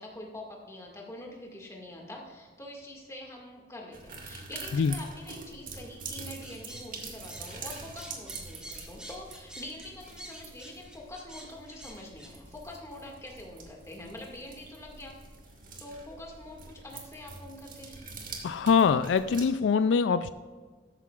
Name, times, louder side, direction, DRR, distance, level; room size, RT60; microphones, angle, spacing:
voice 1, 0.0-15.2 15.8-18.0, left 1 dB, 15° left, -1 dB, 2.0 m, -45 dB
sound 1, 3.9-19.4, right 4 dB, 50° right, 1.7 m, -45 dB
sound 2, 6.4-12.3, right 1 dB, 5° right, 1.7 m, -47 dB
voice 2, 18.4-20.3, left 6 dB, 80° left, 13 dB, 0.3 m, -23 dB
13.5 x 9.7 x 2.4 m, 1.5 s
head